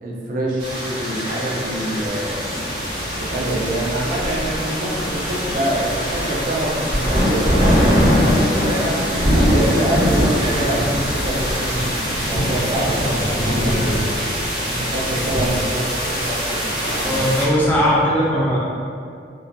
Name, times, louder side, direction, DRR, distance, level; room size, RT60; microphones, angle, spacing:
voice 1, 0.0-2.4 3.1-9.1 9.5-14.1 14.6-16.6 16.9-17.2, right 1 dB, 50° right, -3 dB, 0.4 m, -26 dB
sound 1, 0.6-17.4, equal, 30° right, 0.7 m, -22 dB
Chatter / Hiss / Rattle, 1.3-17.9, equal, 85° right, 0.8 m, -35 dB
Vehicle horn car horn honking / Traffic noise roadway noise, 3.0-10.4, left 1 dB, 90° left, 0.4 m, -35 dB
voice 2, 17.0-18.6, equal, 10° left, -7 dB, 0.4 m, -18 dB
2.4 x 2.2 x 2.5 m, 2.4 s
head